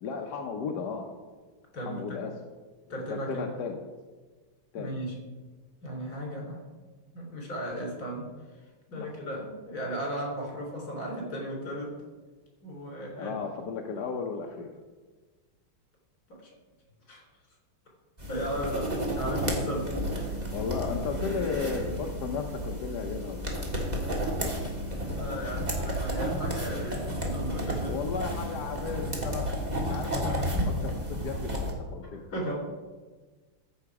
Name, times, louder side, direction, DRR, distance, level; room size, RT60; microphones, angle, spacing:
voice 1, 0.0-1.0 1.9-2.3 3.1-3.8 4.7-5.0 8.9-9.1 13.2-14.7 19.2-19.5 20.5-23.7 25.1-25.2 27.8-29.5 29.8-32.2, left 5 dB, 60° left, 2 dB, 1.2 m, -35 dB
voice 2, 1.7-2.2 2.9-3.5 4.7-5.2 5.8-6.6 7.1-8.3 8.9-11.9 12.6-13.3 16.3-16.4 17.1-17.2 18.3-19.9 24.1-24.2 24.7-28.0 32.3-32.5, right 1 dB, 45° left, -2 dB, 3.9 m, -36 dB
sound 1, 18.2-31.7, equal, 20° right, 1.7 m, -32 dB
14.0 x 6.8 x 4.8 m, 1.4 s
omnidirectional pair, 2.3 m